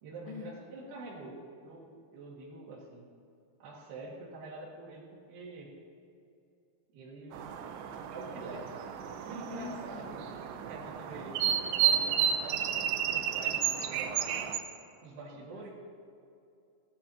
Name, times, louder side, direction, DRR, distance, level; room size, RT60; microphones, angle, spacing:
voice 1, 0.0-3.1 3.6-5.8 6.9-7.4 8.1-8.8 9.2-10.3 10.7-14.4 15.0-15.7, right 2 dB, 70° right, -4 dB, 3.8 m, -46 dB
sound 1, 7.3-14.6, right 9 dB, 90° right, 3.0 m, -32 dB
voice 2, 9.5-10.0 15.5-15.7, left 6 dB, 70° left, -2 dB, 2.7 m, -44 dB
16.5 x 12.0 x 2.9 m, 2.5 s
omnidirectional pair, 5.0 m